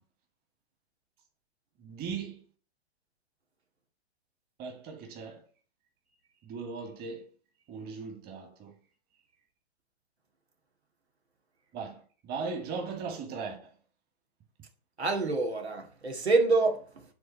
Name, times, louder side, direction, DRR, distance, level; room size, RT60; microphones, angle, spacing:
voice 1, 1.8-2.4 4.6-5.4 6.4-7.2 7.7-8.7 11.7-13.6, right 5 dB, 30° right, 2.4 m, -38 dB
voice 2, 15.0-17.1, right 3 dB, 90° right, 2.6 m, -27 dB
9.6 x 4.1 x 5.5 m
hypercardioid pair, 125°, 32 cm